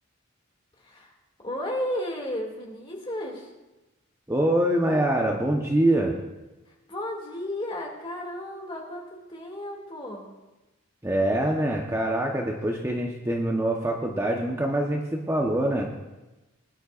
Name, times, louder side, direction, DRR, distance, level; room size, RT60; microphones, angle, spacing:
voice 1, 0.8-1.1 1.4-3.5 6.7-10.3, left 1 dB, 25° left, -1 dB, 2.4 m, -34 dB
voice 2, 4.3-6.2 11.0-15.9, right 1 dB, 15° right, 0 dB, 1.0 m, -24 dB
21.5 x 11.0 x 2.5 m, 1.1 s
head